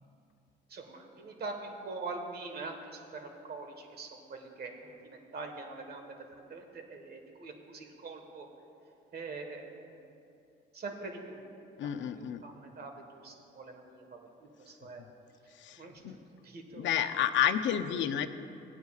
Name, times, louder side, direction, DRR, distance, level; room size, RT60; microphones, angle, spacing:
voice 1, 0.7-2.8 3.1-4.7 5.0-6.1 6.5-8.5 9.1-9.9 10.7-11.4 12.2-12.9 13.2-14.0 14.7-15.0 15.8-16.0 16.4-17.0, right 3 dB, 50° right, 4 dB, 1.4 m, -43 dB
voice 2, 11.8-12.4 15.6-16.2 16.8-18.3, left 9 dB, 70° left, 9 dB, 0.6 m, -30 dB
19.0 x 9.2 x 2.4 m, 2.6 s
cardioid pair, 90°, 20 cm